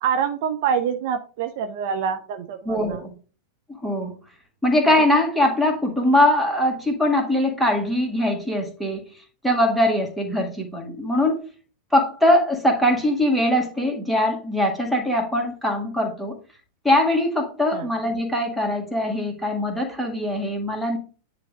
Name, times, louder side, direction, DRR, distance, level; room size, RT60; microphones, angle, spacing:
voice 1, 0.0-3.0 17.7-17.9, right 7 dB, 50° right, 7 dB, 0.6 m, -26 dB
voice 2, 2.7-3.1 3.8-4.2 4.6-9.0 9.4-11.4 11.9-16.4 16.8-21.0, left 1 dB, ahead, 0 dB, 1.9 m, -21 dB
9.7 x 3.3 x 3.7 m, 0.37 s
figure-of-eight pair, 90°, 0 cm